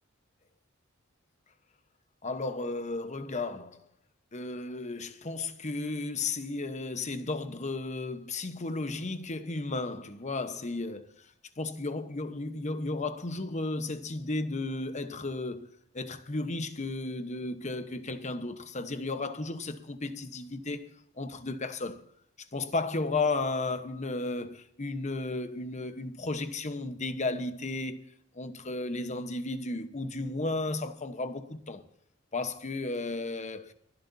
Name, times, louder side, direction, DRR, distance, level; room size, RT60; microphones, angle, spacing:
voice 1, 2.2-3.8 4.3-11.1 11.6-15.7 15.9-20.9 21.2-22.0 22.5-28.0 28.3-31.8 32.3-33.7, left 3 dB, 35° left, 1.1 m, -34 dB
24.5 x 11.5 x 2.7 m
head